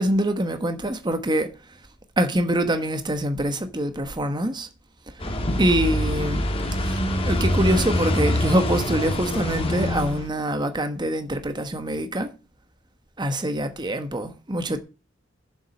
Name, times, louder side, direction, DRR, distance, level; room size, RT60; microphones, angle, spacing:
voice 1, 0.0-1.5 2.2-4.7 5.1-5.2 5.6-6.5 6.8-12.3 13.2-14.8, right 1 dB, 25° right, 1.1 m, -25 dB
sound 1, 5.2-10.3, left 1 dB, 30° left, 1.8 m, -25 dB
7.3 x 7.3 x 7.0 m
head